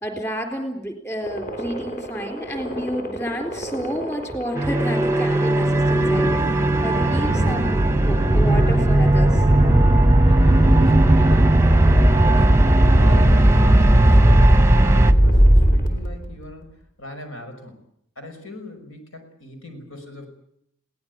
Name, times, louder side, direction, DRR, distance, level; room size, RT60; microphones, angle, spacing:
voice 1, 0.0-6.3 6.8-9.4, equal, 15° left, 4 dB, 3.8 m, -30 dB
sound 1, 1.2-16.3, right 1 dB, 45° left, 3.2 m, -20 dB
sound 2, 4.5-15.1, right 1 dB, 15° right, 0.8 m, -18 dB
voice 2, 10.2-17.8 18.2-20.3, left 2 dB, 90° left, 5 dB, 5.9 m, -40 dB
22.0 x 18.0 x 9.6 m, 0.73 s
head